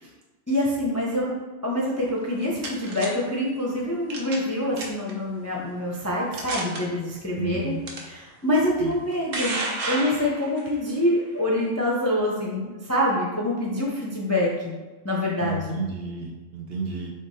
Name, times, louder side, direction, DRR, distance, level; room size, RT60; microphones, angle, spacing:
voice 1, 0.5-1.3 1.6-9.6 9.9-14.8 15.0-15.8, left 1 dB, 20° left, -4 dB, 0.4 m, -26 dB
sound 1, 2.2-3.1 4.1-4.5 4.8-5.1 5.8-5.9 6.3-6.8 7.9-8.0 8.9-10.7, right 2 dB, 85° right, 1.1 m, -31 dB
voice 2, 7.4-7.9 8.8-8.9 15.4-17.1, right 5 dB, 60° right, 0 dB, 0.7 m, -31 dB
3.6 x 3.3 x 4.2 m, 1.2 s
omnidirectional pair, 1.3 m